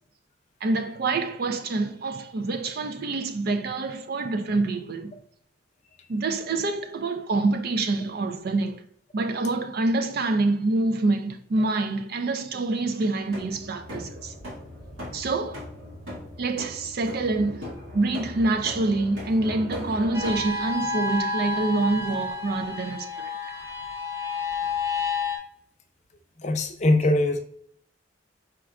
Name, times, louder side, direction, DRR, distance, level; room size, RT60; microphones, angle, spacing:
voice 1, 0.6-5.1 6.1-8.8 9.1-14.3 15.1-15.6 16.4-17.7 17.9-23.3, right 2 dB, 50° right, 0.4 m, -26 dB
sound 1, 13.3-20.5, left 1 dB, 85° right, 2.1 m, -39 dB
sound 2, 20.1-25.4, left 4 dB, 15° right, 0.8 m, -30 dB
voice 2, 26.4-27.4, left 1 dB, 35° left, 0.5 m, -22 dB
5.0 x 4.4 x 2.4 m
head